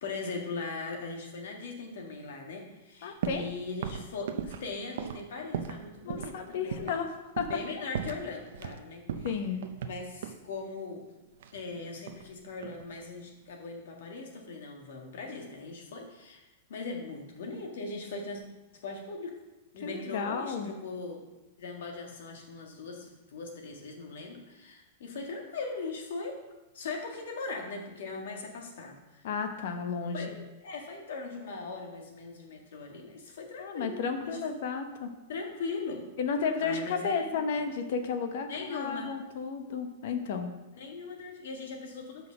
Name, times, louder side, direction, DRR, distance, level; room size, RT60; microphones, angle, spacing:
voice 1, 0.0-7.0 7.5-9.3 9.8-11.0 11.5-18.4 18.8-19.3 19.7-21.3 21.6-26.4 26.7-29.3 30.1-34.0 34.2-34.4 35.3-36.1 36.6-37.3 37.6-37.7 38.5-39.1 40.8-42.3, left 3 dB, 75° left, 2 dB, 1.7 m, -40 dB
voice 2, 3.0-3.5 6.0-7.5 9.2-9.6 19.8-20.7 29.2-30.2 33.6-35.1 36.2-40.5, left 5 dB, 55° left, 7 dB, 1.0 m, -33 dB
sound 1, 3.2-3.5 3.8-5.8 6.1-6.3 6.7-7.0 7.4-7.7 7.9-8.8 9.1-10.4 11.4-12.3 12.6-13.1, right 7 dB, 70° right, 0.6 m, -37 dB
6.0 x 5.5 x 6.2 m, 1.0 s
supercardioid pair, 170°, 0 cm